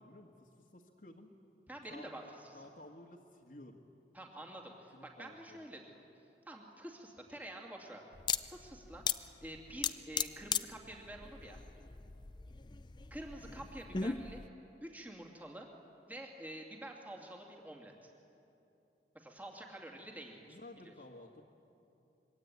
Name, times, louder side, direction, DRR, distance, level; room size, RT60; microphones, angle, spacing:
voice 1, 0.0-1.3 1.9-3.9 4.9-5.6 13.4-13.7 20.5-21.5, left 1 dB, 50° left, -1 dB, 1.6 m, -54 dB
voice 2, 1.7-2.6 4.1-6.0 6.5-8.1 8.5-11.6 13.1-14.4 14.8-15.7 16.1-18.1 19.1-20.6 20.8-20.9, right 1 dB, 10° right, 0 dB, 2.6 m, -48 dB
sound 1, 8.1-14.5, left 6 dB, 25° left, 0.5 m, -38 dB
25.5 x 23.0 x 9.4 m, 2.8 s
head